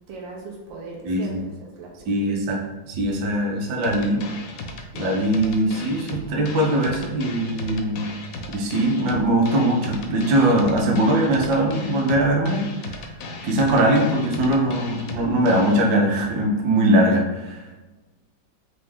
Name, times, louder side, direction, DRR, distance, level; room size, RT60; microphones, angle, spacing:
voice 1, 0.1-2.2, right 3 dB, 80° right, -2 dB, 1.6 m, -39 dB
voice 2, 1.0-1.4 2.1-2.6 2.9-4.2 4.9-8.1 8.5-13.0 13.4-17.7, right 1 dB, 65° right, -1 dB, 1.3 m, -21 dB
sound 1, 3.8-15.8, left 3 dB, 70° left, 0.8 m, -36 dB
4.6 x 2.6 x 3.5 m, 1.1 s
omnidirectional pair, 2.1 m